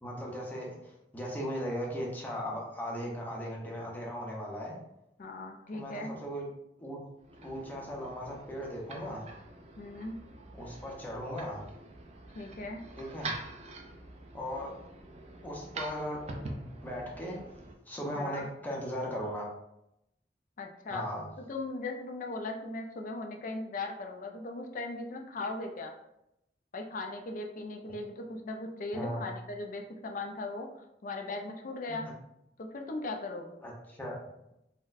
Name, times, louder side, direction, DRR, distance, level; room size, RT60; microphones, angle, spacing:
voice 1, 0.0-4.8 5.7-6.5 6.8-7.0 7.4-9.3 10.5-11.6 13.0-13.3 14.3-14.7 15.4-16.2 16.8-17.4 17.9-19.5 20.9-21.2 28.9-29.2 31.9-32.0 33.6-34.2, equal, 10° left, -3 dB, 0.7 m, -37 dB
voice 2, 5.2-6.1 9.8-10.2 12.3-12.8 18.2-18.4 20.6-21.0 21.5-25.9 26.7-30.7 31.0-32.1 32.6-33.6, left 2 dB, 45° left, 3 dB, 0.4 m, -38 dB
sound 1, 7.2-17.7, right 2 dB, 40° right, 0.4 m, -45 dB
3.9 x 2.1 x 2.5 m, 0.84 s
head